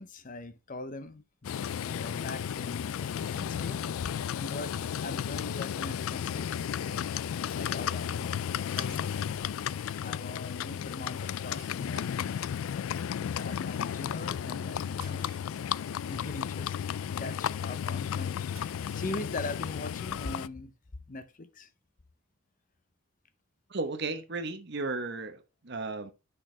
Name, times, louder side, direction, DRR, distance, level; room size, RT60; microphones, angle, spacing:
voice 1, 0.0-1.6 1.9-7.1 7.5-8.3 8.8-9.1 9.4-9.6 10.0-12.4 13.3-15.3 15.9-16.9 17.2-20.7 21.1-21.7, left 2 dB, 40° left, 0.7 m, -42 dB
Livestock farm animals working animals, 1.4-20.5, left 8 dB, 75° left, 0.3 m, -33 dB
sound 1, 8.8-9.6 11.6-12.8 15.0-16.0 18.6-19.6, right 7 dB, 85° right, 2.5 m, -56 dB
voice 2, 23.7-26.1, right 3 dB, 55° right, 0.9 m, -34 dB
9.0 x 6.1 x 3.3 m
head